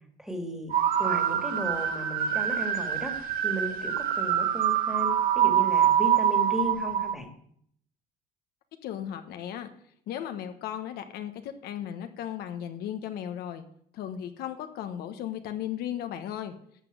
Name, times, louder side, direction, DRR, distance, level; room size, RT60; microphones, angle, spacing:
voice 1, 0.2-0.7 1.0-7.3, equal, 5° right, 5 dB, 2.1 m, -35 dB
sound 1, 0.7-7.1, right 9 dB, 55° right, 1.5 m, -25 dB
voice 2, 8.8-9.7 10.1-13.6 13.9-16.5, left 10 dB, 65° left, 8 dB, 1.2 m, -36 dB
12.5 x 6.0 x 8.1 m, 0.67 s
cardioid pair, 130°, 17 cm